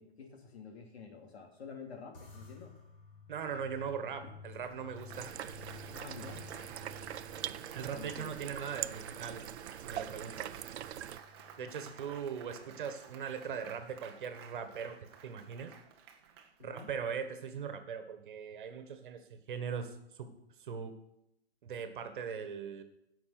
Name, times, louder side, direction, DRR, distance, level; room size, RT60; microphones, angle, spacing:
voice 1, 0.0-2.7 5.9-6.7 7.9-8.3 11.6-11.9 16.6-16.9, left 5 dB, 75° left, 3 dB, 3.1 m, -49 dB
sound 1, 2.1-12.7, left 4 dB, 55° left, 2.9 m, -54 dB
voice 2, 3.3-5.4 7.7-9.4 9.8-10.5 11.6-15.0 15.2-15.7 16.6-20.3 20.6-21.0 21.6-22.8, right 7 dB, 50° right, 9 dB, 1.5 m, -40 dB
Applause, 4.6-17.3, right 7 dB, 25° right, 0.9 m, -53 dB
sound 2, 5.1-11.2, right 11 dB, 90° right, 0.6 m, -43 dB
15.5 x 5.9 x 5.9 m, 0.84 s
hypercardioid pair, 165°, 32 cm